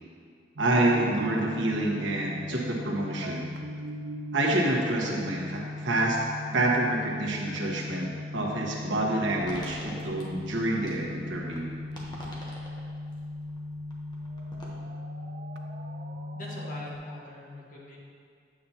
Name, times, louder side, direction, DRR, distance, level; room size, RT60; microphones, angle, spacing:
sound 1, 0.6-17.0, left 2 dB, 65° right, 0.5 m, -38 dB
voice 1, 0.6-3.5 4.3-6.2 6.5-11.7, right 1 dB, 85° right, -3 dB, 1.2 m, -27 dB
sound 2, 9.4-14.7, equal, 25° left, 0.9 m, -46 dB
voice 2, 16.3-18.0, left 1 dB, 45° left, -4 dB, 1.4 m, -43 dB
8.6 x 6.8 x 2.8 m, 2.3 s
head